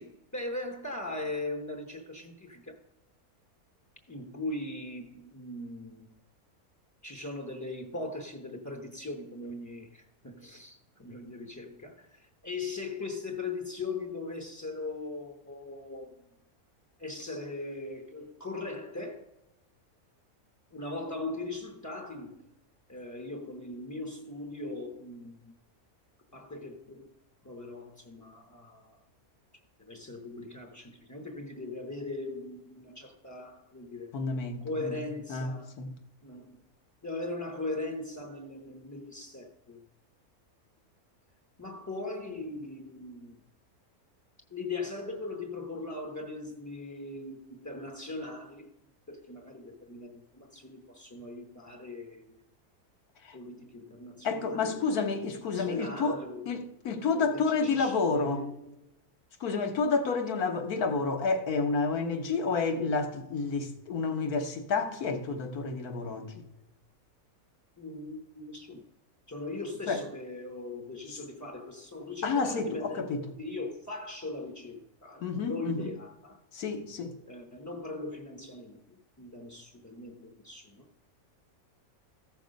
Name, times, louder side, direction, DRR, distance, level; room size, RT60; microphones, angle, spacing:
voice 1, 0.0-2.8 4.1-6.2 7.0-16.3 17.0-19.3 20.7-22.5 22.9-25.6 26.3-27.1 27.4-29.0 29.8-34.2 34.6-35.7 36.2-36.6 37.0-39.9 41.6-43.4 44.5-48.8 49.1-52.4 53.3-55.1 55.4-56.5 57.2-58.7 67.8-68.8 69.3-73.1 73.4-76.4 77.3-80.9, left 2 dB, 20° left, 0.5 m, -40 dB
voice 2, 34.1-35.0 35.3-35.9 53.2-53.4 54.2-56.2 56.5-58.4 59.4-66.4 69.9-70.0 72.2-73.2 75.2-75.9 76.5-77.1, left 4 dB, 80° left, 1.6 m, -30 dB
14.0 x 5.9 x 5.1 m
omnidirectional pair, 1.5 m